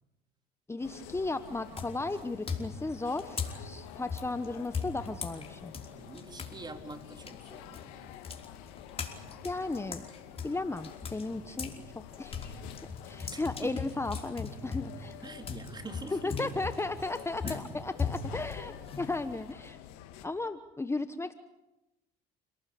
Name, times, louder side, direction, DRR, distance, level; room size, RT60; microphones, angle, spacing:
voice 1, 0.7-5.7 9.4-10.0 10.4-11.7 12.2-12.5 13.0-15.2 16.1-19.8 20.2-21.3, left 3 dB, 15° left, 11 dB, 1.2 m, -35 dB
sound 1, 0.8-20.3, left 11 dB, 85° left, 2.0 m, -48 dB
sound 2, 0.8-1.2 1.7-6.6 6.9-11.8 12.1-19.5, left 5 dB, 30° left, 5.1 m, -39 dB
voice 2, 6.0-8.1 13.3-13.8 15.2-16.5 17.4-17.7, right 2 dB, 25° right, 6 dB, 3.8 m, -45 dB
29.5 x 18.5 x 8.6 m, 0.98 s
supercardioid pair, 80°, 19 cm